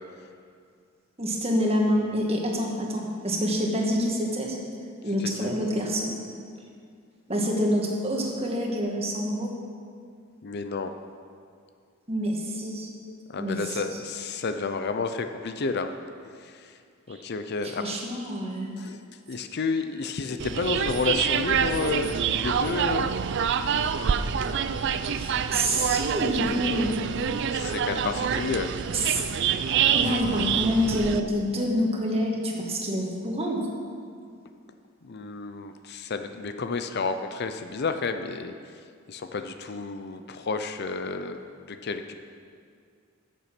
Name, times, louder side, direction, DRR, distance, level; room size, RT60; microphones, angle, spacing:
voice 1, 1.2-4.6 5.0-6.1 7.3-9.5 12.1-12.9 13.4-14.0 17.1-17.2 17.6-18.7 25.1-26.9 28.9-29.2 29.9-33.6, equal, 30° right, 0 dB, 1.6 m, -27 dB
voice 2, 5.2-5.5 10.4-10.9 13.3-15.9 17.1-18.0 18.8-19.0 19.3-23.1 27.5-28.7 35.0-38.5 39.1-41.4 41.7-42.1, left 4 dB, 50° left, 8 dB, 0.5 m, -31 dB
sound 1, 20.4-31.2, right 7 dB, 55° right, 0.4 m, -26 dB
14.0 x 7.0 x 6.0 m, 2.2 s
head